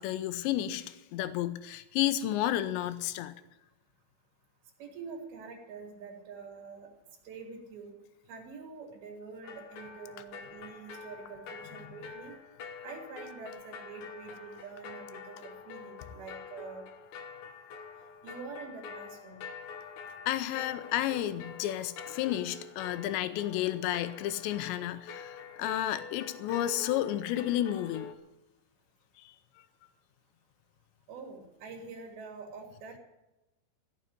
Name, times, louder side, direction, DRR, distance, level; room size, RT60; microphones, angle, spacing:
voice 1, 0.0-3.3 20.3-28.1 29.2-29.4, left 12 dB, 90° left, 12 dB, 3.0 m, -32 dB
voice 2, 4.8-6.9 7.2-7.9 8.3-12.4 12.8-16.9 18.2-19.4 31.1-33.0, right 5 dB, 65° right, 0 dB, 4.0 m, -46 dB
sound 1, 9.4-28.2, left 5 dB, 65° left, 1.9 m, -46 dB
15.0 x 7.0 x 9.8 m, 0.96 s
omnidirectional pair, 5.0 m